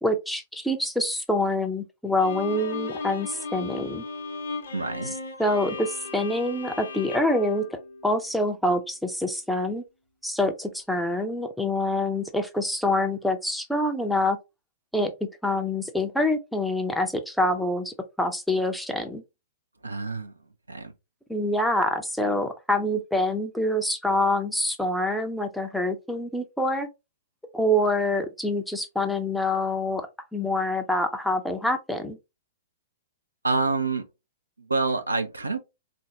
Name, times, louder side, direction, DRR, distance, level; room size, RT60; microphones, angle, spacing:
voice 1, 0.0-4.0 5.4-7.6 8.0-9.8 10.2-14.4 14.9-15.1 15.4-19.2 21.3-26.9 27.5-30.0 30.3-32.2, left 1 dB, ahead, 0.5 m, -26 dB
Bowed string instrument, 2.2-8.5, left 3 dB, 60° left, 0.6 m, -36 dB
voice 2, 4.7-5.1 19.8-20.3 20.7-20.9 33.4-34.1 34.6-35.6, right 3 dB, 80° right, 0.6 m, -27 dB
3.6 x 2.5 x 2.7 m
figure-of-eight pair, 105°, 0 cm